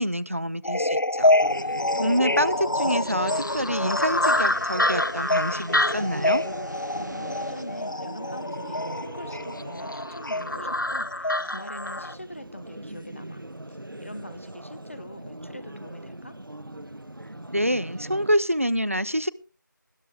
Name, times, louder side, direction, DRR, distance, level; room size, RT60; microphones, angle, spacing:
voice 1, 0.0-1.3 2.0-6.4 17.5-19.3, equal, 40° right, 20 dB, 0.7 m, -26 dB
sound 1, 0.6-12.1, left 1 dB, 70° left, 0.8 m, -26 dB
sound 2, 1.4-18.4, right 1 dB, 85° right, 1.3 m, -40 dB
voice 2, 1.6-2.4 7.0-13.4 13.7-16.4, equal, 40° left, 15 dB, 1.1 m, -43 dB
sound 3, 2.9-7.9, right 1 dB, 60° right, 1.7 m, -45 dB
20.0 x 11.0 x 3.4 m, 0.34 s
figure-of-eight pair, 180°, 11 cm